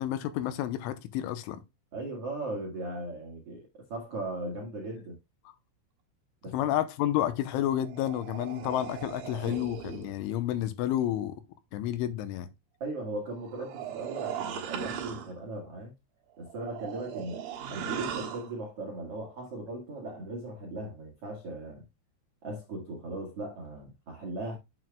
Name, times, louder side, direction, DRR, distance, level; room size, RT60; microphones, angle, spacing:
voice 1, 0.0-1.6 6.5-11.4 11.7-12.5, left 12 dB, 80° left, 3.1 m, -30 dB
voice 2, 1.9-5.2 6.4-6.7 12.8-15.9 16.4-17.4 17.7-21.8 22.4-24.6, right 2 dB, 85° right, 1.3 m, -38 dB
sound 1, 7.6-10.1 13.2-15.4 16.4-18.5, right 9 dB, 65° right, 2.6 m, -38 dB
9.3 x 7.8 x 2.3 m
omnidirectional pair, 5.8 m